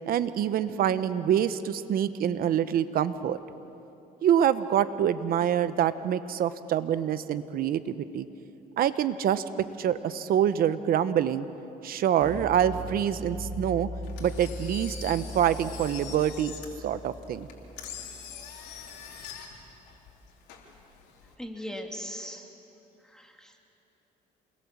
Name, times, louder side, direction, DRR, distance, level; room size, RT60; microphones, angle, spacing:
voice 1, 0.1-3.4 4.2-8.3 8.8-11.5 11.8-13.9 14.2-16.5 16.8-17.5, right 10 dB, 60° right, 13 dB, 1.0 m, -26 dB
sound 1, 12.2-18.2, equal, 15° right, 4.7 m, -39 dB
Engine, 14.0-21.3, left 7 dB, 85° left, 3.6 m, -44 dB
voice 2, 21.4-22.5 23.1-23.6, equal, 5° left, 2 dB, 2.5 m, -39 dB
28.0 x 21.0 x 7.5 m, 2.9 s
cardioid pair, 110°, 17 cm